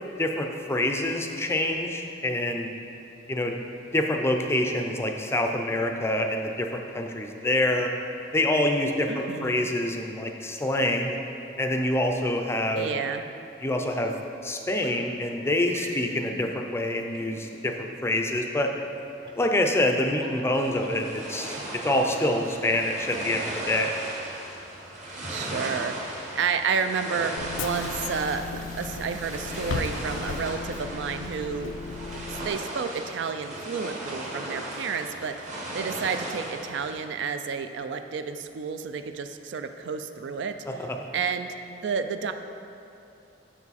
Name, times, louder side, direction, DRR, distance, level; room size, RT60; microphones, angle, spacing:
voice 1, 0.2-2.7 3.3-3.6 3.9-7.9 8.3-11.2 11.6-12.9 13.6-14.1 14.4-18.7 19.4-21.6 21.8-23.9 40.7-41.0, left 1 dB, 15° left, 3 dB, 0.4 m, -26 dB
voice 2, 9.1-9.7 12.7-13.2 25.3-28.5 28.8-31.7 32.3-35.5 35.7-40.6 41.1-41.5 41.8-42.3, right 6 dB, 70° right, 8 dB, 0.4 m, -31 dB
sound 1, 14.8-15.0 15.7-16.4 17.1-17.7 19.2-19.6 20.1-21.2 21.7-22.1, right 2 dB, 25° right, 0.6 m, -43 dB
sound 2, 20.5-37.0, right 1 dB, 40° right, 1.2 m, -37 dB
Bus / Engine, 27.4-32.5, left 5 dB, 80° left, 0.3 m, -35 dB
7.1 x 6.0 x 4.1 m, 2.8 s
head